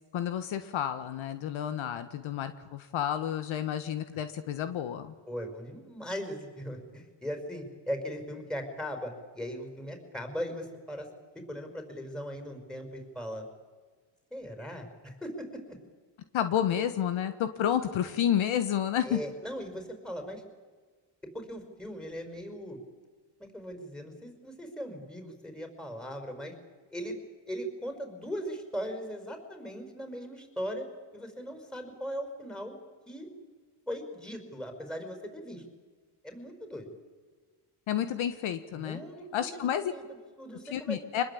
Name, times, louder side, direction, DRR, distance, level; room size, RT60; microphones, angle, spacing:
voice 1, 0.1-5.1 16.3-19.2 37.9-39.0 39.3-39.9 40.7-41.2, left 10 dB, 70° left, 11 dB, 1.6 m, -30 dB
voice 2, 5.3-11.1 11.3-13.4 14.3-15.8 19.0-20.4 21.3-22.8 23.4-26.5 26.9-27.2 27.5-30.9 31.1-32.8 33.1-33.3 33.9-35.6 36.2-36.9 38.8-39.3 39.5-41.0, equal, ahead, 5 dB, 5.7 m, -39 dB
25.5 x 20.5 x 8.7 m, 1.5 s
cardioid pair, 95°, 49 cm